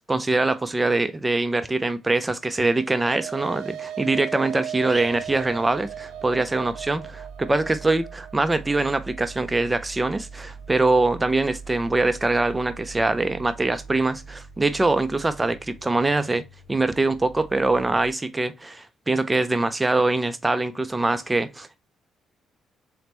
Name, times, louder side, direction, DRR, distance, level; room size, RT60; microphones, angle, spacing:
voice 1, 0.1-16.4 16.7-21.8, right 2 dB, 20° right, 0.5 m, -23 dB
sound 1, 2.5-11.1, right 10 dB, 80° right, 0.5 m, -38 dB
sound 2, 4.7-18.1, right 4 dB, 55° left, 2.6 m, -43 dB
4.2 x 3.2 x 2.9 m
cardioid pair, 90°, 0 cm